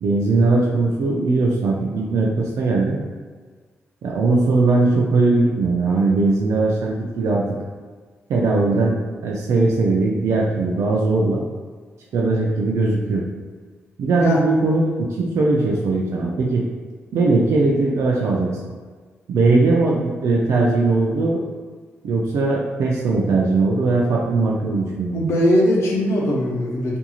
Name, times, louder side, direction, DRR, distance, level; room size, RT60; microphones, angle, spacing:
voice 1, 0.0-3.0 4.0-7.6 8.3-9.0 9.2-11.4 12.1-13.2 14.0-16.6 17.1-18.6 19.3-21.4 22.0-25.3, right 3 dB, 80° right, -2 dB, 0.4 m, -19 dB
voice 2, 25.1-27.0, equal, 65° left, -4 dB, 0.7 m, -20 dB
2.6 x 2.3 x 2.9 m, 1.5 s
cardioid pair, 110°, 5 cm